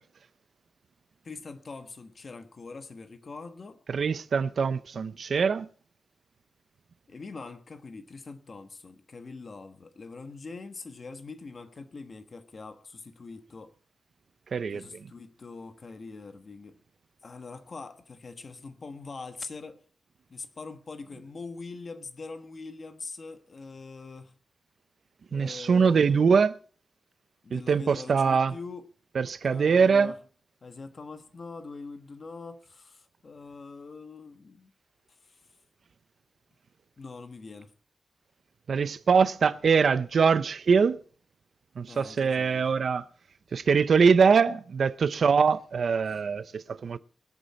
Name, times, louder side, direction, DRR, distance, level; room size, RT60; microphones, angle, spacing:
voice 1, 1.2-3.8 7.1-13.7 14.7-16.7 17.2-19.8 20.3-24.3 25.3-26.3 27.4-28.8 29.4-30.1 30.6-34.7 35.2-35.4 37.0-37.7 41.9-42.7 46.0-46.2, left 4 dB, 40° left, 1.3 m, -43 dB
voice 2, 3.9-5.7 14.5-14.8 25.3-26.6 27.5-28.5 29.1-30.1 38.7-41.0 41.8-43.0 43.5-47.0, right 5 dB, 60° right, 0.6 m, -23 dB
24.5 x 8.2 x 4.2 m
wide cardioid pair, 170°, 0 cm